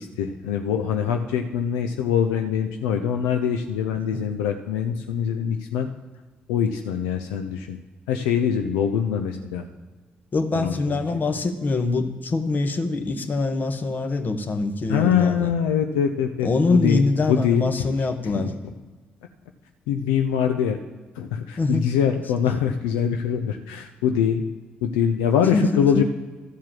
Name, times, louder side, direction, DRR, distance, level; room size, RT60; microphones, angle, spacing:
voice 1, 0.0-5.9 6.5-7.8 8.1-9.7 10.5-11.2 14.9-17.9 18.2-18.6 19.9-20.8 21.1-24.4 24.8-26.0, left 8 dB, 80° left, 5 dB, 0.6 m, -23 dB
voice 2, 10.3-15.5 16.4-18.5 21.6-21.8 25.5-26.0, left 3 dB, 40° left, 6 dB, 1.3 m, -24 dB
13.0 x 4.7 x 7.5 m, 1.3 s
hypercardioid pair, 45°, 4 cm